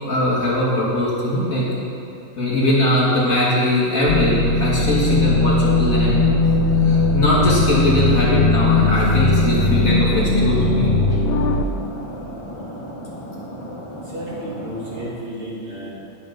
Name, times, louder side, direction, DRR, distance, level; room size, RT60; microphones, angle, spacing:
voice 1, 0.0-1.7 2.4-6.3 6.8-10.9, left 1 dB, 85° left, -7 dB, 3.0 m, -20 dB
sound 1, 4.1-11.7, left 3 dB, 55° left, 0.7 m, -18 dB
sound 2, 4.6-15.1, equal, 25° left, 1.2 m, -35 dB
voice 2, 14.1-15.9, right 1 dB, 55° right, -7 dB, 3.1 m, -32 dB
10.5 x 8.9 x 5.4 m, 2.7 s
omnidirectional pair, 1.4 m